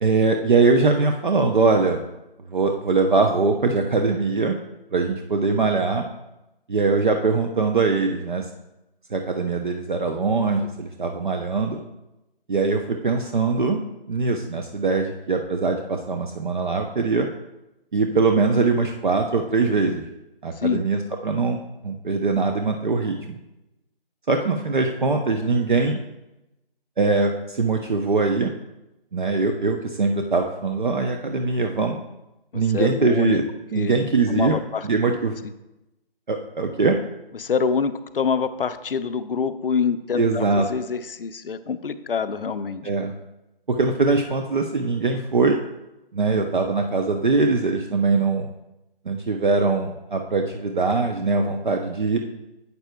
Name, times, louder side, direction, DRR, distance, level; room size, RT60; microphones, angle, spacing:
voice 1, 0.0-2.0 2.5-4.6 4.9-6.1 6.7-8.4 9.1-11.8 12.5-13.8 14.1-17.3 17.9-20.1 20.4-21.6 21.8-23.4 24.3-26.0 27.0-28.5 29.1-32.0 32.5-33.4 33.7-34.6 34.8-35.4 36.3-37.0 40.2-40.7 42.8-43.1 43.7-45.6 46.1-48.5 49.1-52.2, right 4 dB, 55° right, 4 dB, 0.7 m, -22 dB
voice 2, 32.5-33.4 33.7-34.0 34.3-34.9 37.3-42.9, left 6 dB, 65° left, 11 dB, 0.6 m, -26 dB
11.5 x 8.1 x 2.2 m, 0.94 s
figure-of-eight pair, 165°, 30 cm